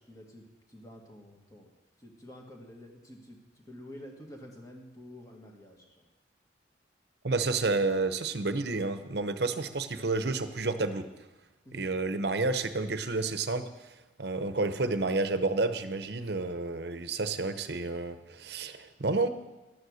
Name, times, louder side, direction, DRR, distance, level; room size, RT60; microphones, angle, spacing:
voice 1, 0.0-1.7 2.0-5.9 11.7-11.8, left 1 dB, 20° left, 0 dB, 1.9 m, -49 dB
voice 2, 7.2-11.1 11.7-19.3, right 3 dB, 60° right, 10 dB, 0.8 m, -30 dB
12.5 x 9.6 x 6.4 m, 1.1 s
head